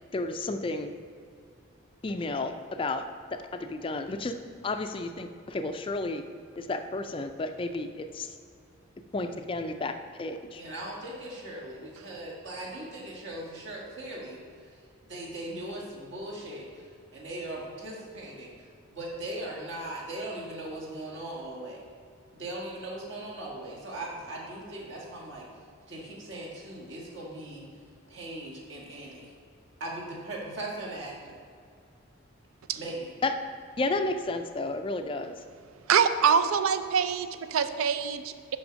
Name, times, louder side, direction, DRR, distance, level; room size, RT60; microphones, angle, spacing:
voice 1, 0.1-0.9 2.0-3.0 3.3-4.4 4.6-6.2 6.6-8.3 9.1-10.6 33.2-33.3 33.8-35.4, left 2 dB, 25° left, 8 dB, 0.3 m, -32 dB
voice 2, 10.6-14.4 15.0-16.9 17.1-18.5 18.9-21.8 22.3-25.4 25.9-27.7 28.1-29.3 29.8-31.4 32.7-33.1, right 1 dB, 60° right, -4 dB, 1.7 m, -39 dB
voice 3, 35.9-38.6, right 7 dB, 80° right, 11 dB, 0.4 m, -25 dB
6.1 x 5.8 x 5.1 m, 2.2 s
head